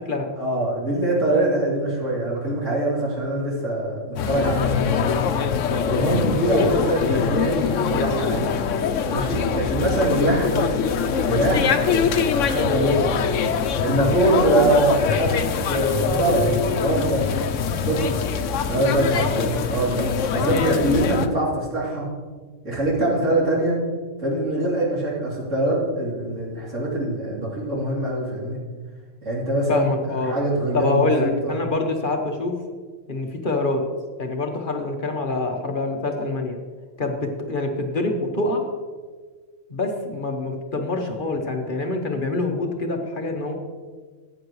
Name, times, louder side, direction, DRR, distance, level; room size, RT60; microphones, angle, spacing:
voice 1, 0.4-5.2 5.9-8.5 9.1-10.8 11.1-13.2 13.8-17.5 17.8-18.1 18.7-22.1 22.6-23.8 24.2-28.6 29.3-29.9 30.3-31.5, right 1 dB, 75° right, -5 dB, 3.5 m, -23 dB
sound 1, 4.2-21.3, left 6 dB, 80° left, 1.0 m, -23 dB
voice 2, 29.7-30.4 30.7-32.6 33.1-33.8 34.2-36.6 37.0-38.7 39.7-43.5, left 2 dB, 45° left, 3 dB, 1.1 m, -25 dB
14.5 x 9.2 x 3.1 m, 1.5 s
omnidirectional pair, 1.3 m